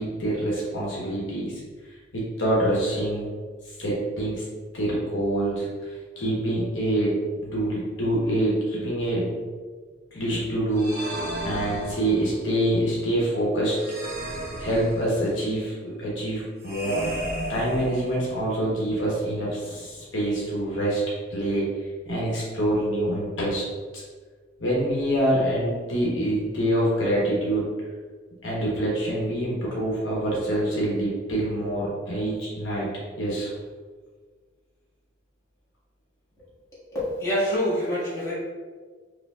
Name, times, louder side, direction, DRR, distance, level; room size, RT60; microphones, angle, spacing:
voice 1, 0.0-1.6 2.1-3.3 3.8-4.4 4.7-9.3 10.1-11.0 11.4-13.8 14.6-17.2 17.5-21.0 21.3-21.7 22.0-23.6 23.9-24.0 24.6-27.7 28.4-32.9 33.2-33.5, right 1 dB, 75° left, -5 dB, 1.0 m, -26 dB
sound 1, 10.7-12.4 13.7-15.4 16.6-18.5, right 1 dB, 55° right, 0.7 m, -34 dB
voice 2, 36.9-38.3, equal, 15° left, -10 dB, 1.4 m, -26 dB
4.8 x 2.5 x 2.3 m, 1.5 s
head